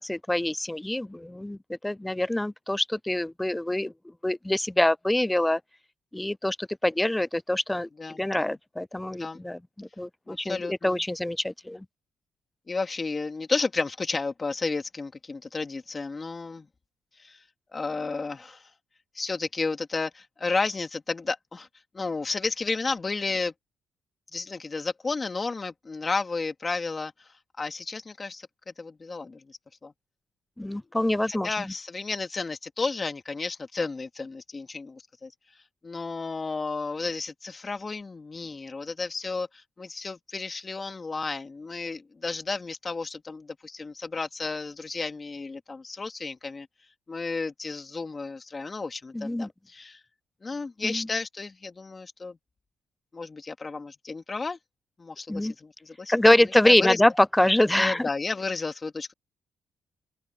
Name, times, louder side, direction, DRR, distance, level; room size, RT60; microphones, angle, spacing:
voice 1, 0.0-3.9 4.2-5.6 6.1-11.9 30.6-31.7 49.1-49.5 50.8-51.1 55.3-55.5 56.1-58.1, left 1 dB, 10° left, 0.3 m, -25 dB
voice 2, 8.0-8.5 9.1-9.4 10.3-11.0 12.7-16.7 17.2-17.4 17.7-18.6 19.1-21.7 21.9-23.5 24.3-27.1 27.6-28.5 28.8-29.9 31.3-35.3 35.8-46.7 47.1-50.0 50.4-52.4 53.1-54.6 55.0-57.0 57.8-59.1, left 4 dB, 30° left, 2.2 m, -32 dB
cardioid pair, 90°, 0 cm